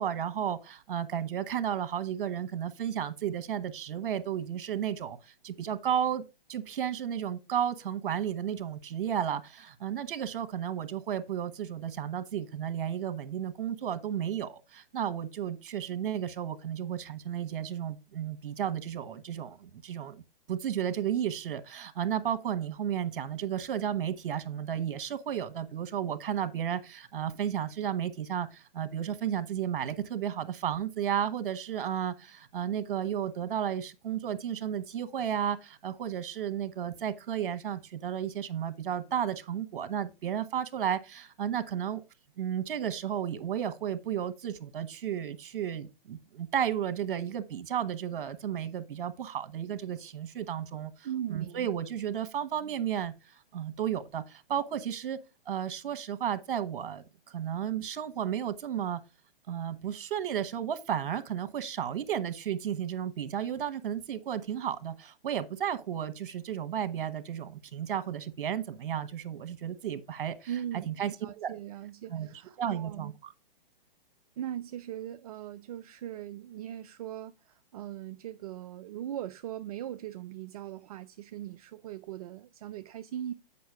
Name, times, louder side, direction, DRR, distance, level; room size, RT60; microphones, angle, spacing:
voice 1, 0.0-6.2 6.5-20.2 20.5-42.0 42.4-55.2 55.5-59.0 59.5-70.5 70.9-71.5 72.1-72.3 72.6-73.3, right 9 dB, 65° right, 1.3 m, -33 dB
voice 2, 51.0-51.7 70.5-73.1 74.4-83.3, right 11 dB, 40° right, 0.4 m, -39 dB
8.5 x 5.6 x 4.7 m
hypercardioid pair, 140°, 29 cm